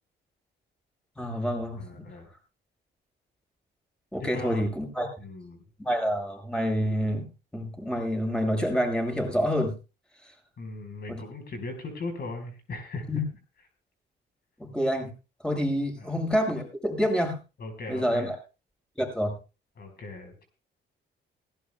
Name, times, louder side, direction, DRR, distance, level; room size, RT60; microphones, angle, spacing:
voice 1, 1.2-2.0 4.1-5.1 5.8-7.3 7.5-9.7 11.1-11.2 13.1-13.2 14.6-15.1 15.4-17.4 17.9-18.4 19.0-19.4, equal, 5° left, 1 dB, 7.8 m, -27 dB
voice 2, 1.8-2.3 4.2-4.7 5.2-5.6 10.6-13.1 16.0-16.1 17.6-18.3 19.8-20.4, left 2 dB, 55° left, 5 dB, 4.5 m, -38 dB
19.0 x 17.5 x 2.3 m, 0.32 s
cardioid pair, 90°, 20 cm